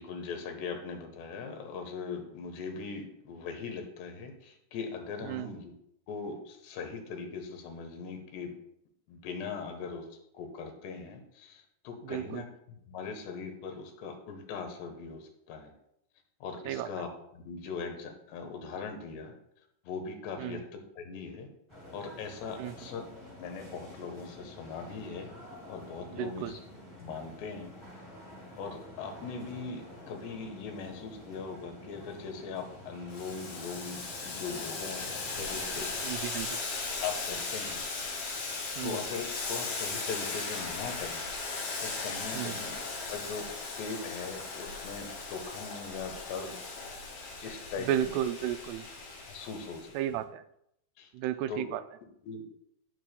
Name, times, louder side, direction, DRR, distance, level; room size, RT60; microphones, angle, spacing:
voice 1, 0.0-5.7 6.1-8.5 9.1-12.4 12.9-15.7 16.4-19.3 19.8-21.5 21.9-23.0 23.4-25.3 25.7-26.6 27.0-27.8 28.6-35.9 37.0-38.4 38.8-41.2 41.8-42.8 43.1-43.5 43.8-46.6 47.4-48.2 49.3-50.2 51.0-51.1 51.5-51.6 52.2-52.5, left 5 dB, 85° left, 5 dB, 3.4 m, -40 dB
voice 2, 12.1-12.4 16.7-16.9 20.4-20.6 22.6-22.7 26.1-26.5 36.0-36.6 38.8-39.0 42.3-42.5 47.9-48.8 49.9-50.4 51.1-51.8, right 11 dB, 85° right, 10 dB, 2.6 m, -33 dB
sound 1, 21.7-36.0, equal, 5° left, 3.0 m, -49 dB
Boiling, 33.1-49.9, left 3 dB, 60° left, 3.6 m, -37 dB
18.0 x 7.0 x 2.2 m, 0.76 s
omnidirectional pair, 4.7 m